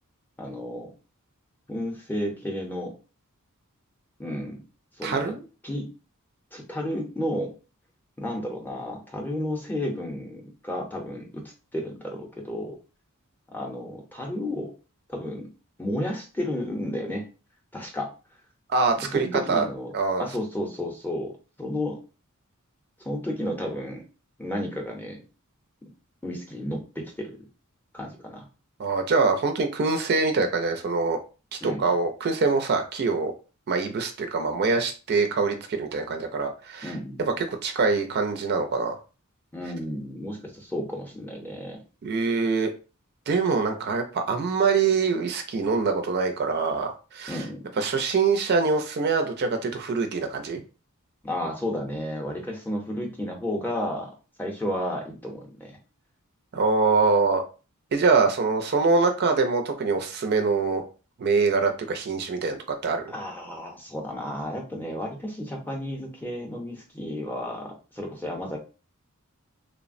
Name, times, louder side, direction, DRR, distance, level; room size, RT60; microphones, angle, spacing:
voice 1, 0.4-0.9 1.7-2.9 4.2-4.6 5.0-5.3 5.6-5.9 6.5-7.5 8.2-12.8 13.5-14.7 15.1-15.5 15.8-17.3 17.7-18.1 19.1-19.9 20.2-21.3 21.6-22.0 23.0-24.0 24.4-25.2 26.2-27.4 27.9-28.5 31.6-31.9 36.8-37.2 39.5-41.8 47.3-47.6 51.2-54.1 54.4-55.8 63.1-68.6, left 1 dB, 10° left, 0 dB, 0.6 m, -32 dB
voice 2, 5.0-5.4 18.7-19.7 19.9-20.3 28.8-31.2 31.6-33.3 33.7-36.9 37.2-39.0 42.0-42.7 43.3-47.4 47.8-50.6 56.5-57.4 57.9-60.8 61.2-63.1, right 4 dB, 50° right, 5 dB, 0.4 m, -24 dB
3.2 x 2.0 x 2.5 m, 0.34 s
head